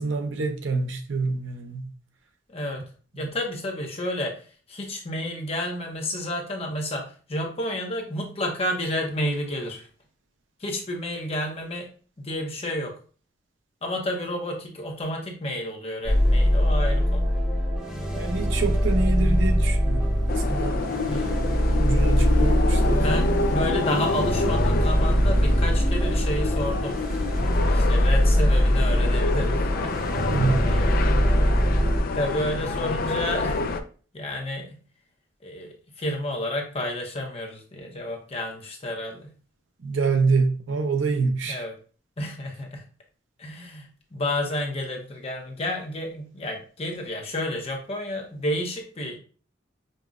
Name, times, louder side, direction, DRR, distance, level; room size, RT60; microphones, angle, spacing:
voice 1, 0.0-1.9 3.1-3.3 18.1-20.0 20.3-20.8 21.8-23.1 30.1-30.6 39.8-41.6, right 4 dB, 80° right, 5 dB, 0.6 m, -26 dB
voice 2, 2.5-2.8 3.1-9.9 10.6-11.9 12.2-12.9 13.8-17.3 21.1-21.3 22.9-29.9 30.7-30.9 32.1-33.7 34.1-34.8 35.4-39.3 41.4-41.7 42.2-42.8 43.4-49.2, left 1 dB, 30° left, 1 dB, 0.7 m, -31 dB
sound 1, 16.0-32.0, equal, 5° right, 0.8 m, -22 dB
Car passing by / Traffic noise roadway noise / Engine, 20.0-27.3, left 1 dB, 75° left, 0.9 m, -36 dB
sound 2, 20.3-33.8, left 3 dB, 50° left, 0.3 m, -28 dB
5.3 x 2.1 x 2.4 m, 0.39 s
head